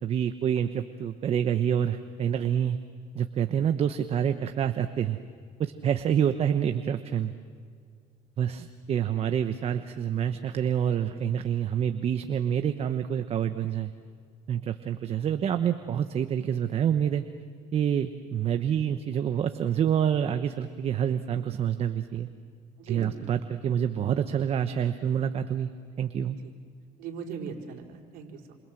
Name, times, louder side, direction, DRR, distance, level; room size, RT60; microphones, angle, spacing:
voice 1, 0.0-2.8 3.1-5.2 5.6-7.3 8.4-13.9 14.5-17.2 17.7-22.3 22.9-25.7 26.0-26.4, right 9 dB, 40° right, 8 dB, 1.0 m, -27 dB
voice 2, 22.8-23.1 26.4-26.5 27.0-28.5, right 6 dB, 70° right, 0 dB, 4.6 m, -39 dB
28.0 x 27.5 x 7.8 m, 2.1 s
cardioid pair, 120°, 15 cm